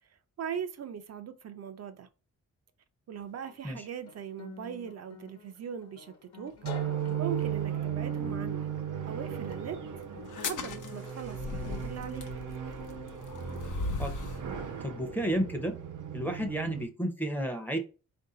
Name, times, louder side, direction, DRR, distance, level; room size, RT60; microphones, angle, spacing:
voice 1, 0.4-2.1 3.1-6.6 7.2-8.6 9.0-10.0 10.4-12.2, right 8 dB, 55° right, 0.5 m, -40 dB
Guitar, 3.2-12.6, left 6 dB, 50° left, 1.0 m, -50 dB
sound 1, 6.6-16.9, right 8 dB, 90° right, 0.8 m, -36 dB
sound 2, 10.3-14.5, left 3 dB, 80° left, 0.8 m, -38 dB
voice 2, 14.8-15.7 16.1-17.8, right 1 dB, 5° left, 0.6 m, -31 dB
4.5 x 2.6 x 3.8 m
wide cardioid pair, 170°, 30 cm